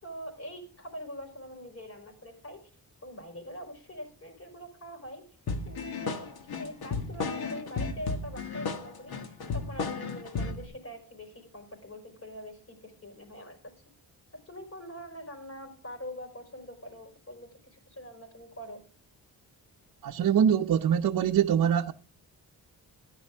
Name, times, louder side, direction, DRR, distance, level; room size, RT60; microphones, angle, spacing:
voice 1, 0.0-2.7 3.0-5.2 5.6-13.7 14.5-18.8, equal, 40° left, 5.1 m, -43 dB
sound 1, 5.5-10.7, left 4 dB, 75° left, 1.8 m, -34 dB
voice 2, 20.0-21.9, right 8 dB, 60° right, 0.7 m, -24 dB
14.0 x 11.0 x 3.6 m
cardioid pair, 100°, 37 cm